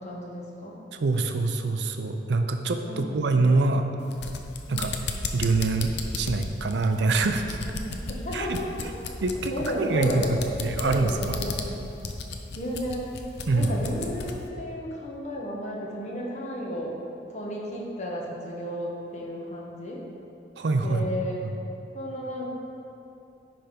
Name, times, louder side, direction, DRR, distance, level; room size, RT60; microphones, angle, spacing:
voice 1, 0.0-0.8 2.8-3.3 4.7-5.0 7.6-8.7 9.3-10.4 10.8-11.9 12.5-13.1 13.5-17.0 17.3-20.0 20.8-21.4 21.9-22.5, equal, 40° left, -3 dB, 1.2 m, -33 dB
voice 2, 0.9-3.9 4.7-4.9 5.3-7.6 8.3-8.6 9.2-9.5 9.8-10.1 10.6-11.4 13.5-13.7 20.6-21.1 21.4-21.5, right 3 dB, 75° right, 6 dB, 0.5 m, -25 dB
sound 1, 4.0-14.4, left 4 dB, 70° left, 0.6 m, -35 dB
10.0 x 3.5 x 5.1 m, 2.8 s
head